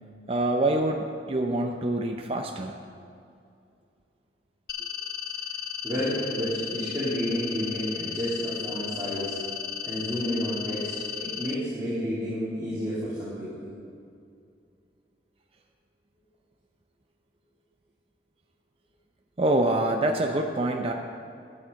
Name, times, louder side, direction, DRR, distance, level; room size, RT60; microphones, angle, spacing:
voice 1, 0.3-2.8 19.4-20.9, right 1 dB, 35° right, 3 dB, 0.6 m, -25 dB
sound 1, 4.7-11.5, left 9 dB, 60° left, 0.6 m, -35 dB
voice 2, 5.8-9.4 9.8-10.9 11.2-13.7, equal, 15° right, -12 dB, 3.0 m, -30 dB
12.5 x 8.7 x 5.2 m, 2.4 s
head